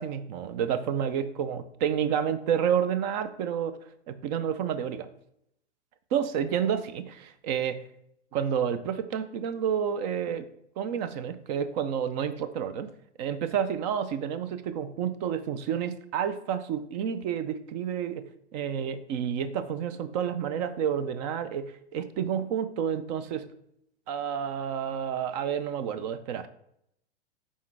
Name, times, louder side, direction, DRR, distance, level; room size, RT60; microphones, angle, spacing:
voice 1, 0.0-3.8 4.1-5.1 6.1-7.8 8.3-10.4 10.8-12.9 13.2-18.3 18.5-23.5 24.1-26.5, right 8 dB, 40° right, 12 dB, 0.6 m, -30 dB
5.5 x 4.2 x 4.6 m, 0.73 s
hypercardioid pair, 115°, 34 cm